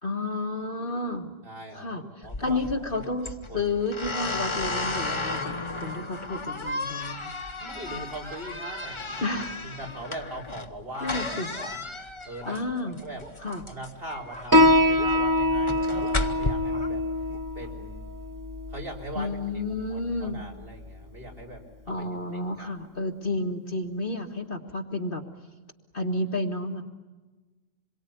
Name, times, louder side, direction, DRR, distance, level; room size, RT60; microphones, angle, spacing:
voice 1, 0.0-1.3 1.7-7.3 9.2-9.5 11.0-11.5 12.5-13.0 13.4-13.6 19.1-20.4 21.9-25.2 25.9-26.8, left 2 dB, 45° left, 3 dB, 1.8 m, -31 dB
voice 2, 1.4-2.6 2.9-3.0 3.5-3.7 7.6-9.4 9.6-11.8 12.2-12.6 12.8-13.2 13.7-17.0 17.5-18.0 18.7-19.4 19.9-22.1 22.6-22.7, right 1 dB, 45° right, -2 dB, 4.3 m, -40 dB
sound 1, 2.2-16.5, left 2 dB, 25° left, 1.1 m, -34 dB
sound 2, 9.8-10.1 10.9-11.8 12.4-12.6 13.2-13.6 14.3-14.5 14.9-15.1 15.9-16.2 16.6-16.9 17.3-17.8, right 1 dB, 5° left, 1.8 m, -44 dB
Piano, 14.5-21.6, left 1 dB, 20° right, 0.7 m, -25 dB
27.5 x 22.5 x 9.3 m, 1.2 s
omnidirectional pair, 1.3 m